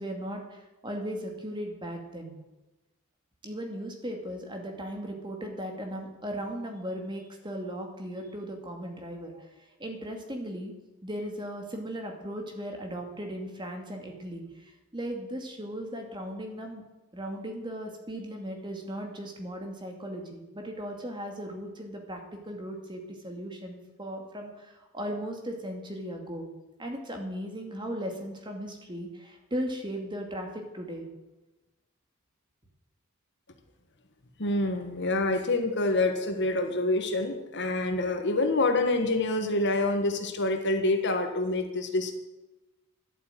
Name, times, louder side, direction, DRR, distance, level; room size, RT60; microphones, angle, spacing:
voice 1, 0.0-2.4 3.4-9.5 9.8-10.7 11.0-16.8 17.1-26.5 26.8-31.1, equal, 20° right, 2 dB, 2.3 m, -37 dB
voice 2, 34.4-42.1, left 2 dB, 55° left, 6 dB, 1.5 m, -27 dB
11.5 x 8.3 x 9.1 m, 1.1 s
head